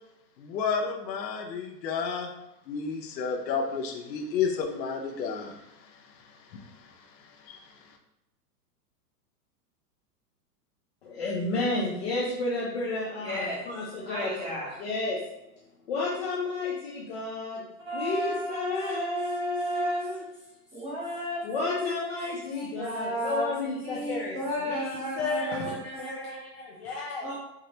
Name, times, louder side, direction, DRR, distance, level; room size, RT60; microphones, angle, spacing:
voice 1, 0.4-2.3 2.7-5.6 6.5-6.9 7.4-7.6, left 5 dB, 80° left, 3 dB, 0.8 m, -31 dB
voice 2, 11.0-15.2 15.9-17.6 17.9-20.2 21.4-27.3, left 3 dB, 40° left, -5 dB, 0.5 m, -32 dB
voice 3, 13.2-13.7 14.0-14.7 17.8-20.1 20.7-26.3 27.2-27.3, right 1 dB, 10° right, -7 dB, 0.8 m, -33 dB
4.8 x 2.0 x 2.8 m, 0.92 s
supercardioid pair, 160°, 50 cm